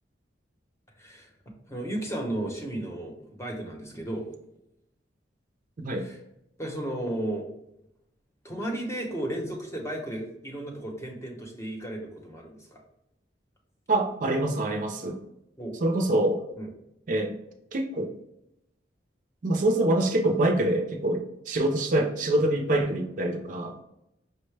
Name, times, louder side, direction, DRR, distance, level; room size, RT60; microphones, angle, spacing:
voice 1, 1.0-1.3 1.7-4.3 5.9-6.2 6.6-7.5 8.4-12.8 15.6-15.8 16.6-16.7, right 1 dB, 15° left, 0 dB, 0.8 m, -34 dB
voice 2, 13.9-15.2 15.8-16.4 17.1-17.3 17.7-18.1 19.4-23.8, right 1 dB, 45° right, 4 dB, 0.5 m, -25 dB
5.5 x 2.1 x 3.2 m, 0.83 s
head